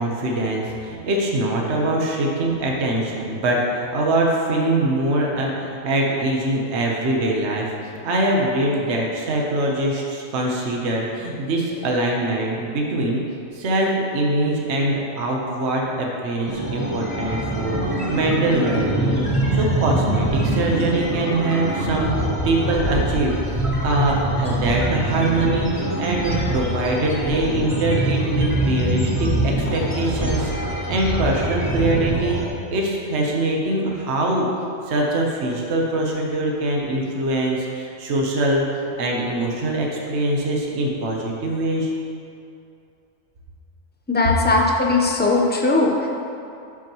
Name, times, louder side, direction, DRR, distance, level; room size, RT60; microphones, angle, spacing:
voice 1, 0.0-7.7 8.0-13.2 13.5-19.2 19.5-22.1 22.4-30.5 30.9-32.4 32.7-34.5 34.9-41.9, right 1 dB, 60° right, -1 dB, 1.2 m, -23 dB
sound 1, 16.4-32.5, right 1 dB, 25° right, 1.9 m, -24 dB
voice 2, 44.1-46.1, left 3 dB, 10° left, -1 dB, 0.5 m, -19 dB
11.5 x 6.0 x 3.0 m, 2.5 s
omnidirectional pair, 1.4 m